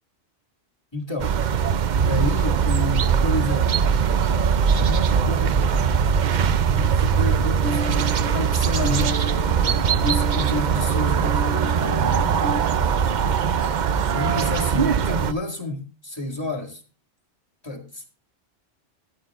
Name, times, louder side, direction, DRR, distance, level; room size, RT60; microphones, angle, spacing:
voice 1, 0.9-1.6 1.9-3.8 4.7-5.6 6.7-9.3 10.0-12.4 14.1-16.8 17.6-18.1, left 2 dB, 20° left, 2.2 m, -30 dB
sound 1, 1.2-15.3, right 7 dB, 50° right, 0.6 m, -21 dB
sound 2, 7.3-12.6, equal, 80° right, 1.6 m, -32 dB
13.0 x 11.5 x 2.4 m
omnidirectional pair, 1.2 m